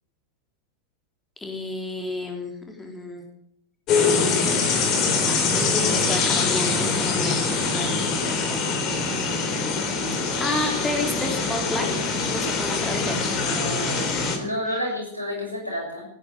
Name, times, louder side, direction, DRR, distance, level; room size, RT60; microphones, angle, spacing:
voice 1, 1.4-3.2 5.3-8.6 10.1-11.9 12.2-13.3, left 2 dB, 10° left, 2 dB, 3.9 m, -31 dB
sound 1, 3.9-14.4, left 4 dB, 35° left, 3.8 m, -24 dB
voice 2, 13.4-14.1 14.4-16.0, equal, 90° left, -1 dB, 6.9 m, -30 dB
17.5 x 10.5 x 7.9 m, 0.75 s
figure-of-eight pair, 90°, 0 cm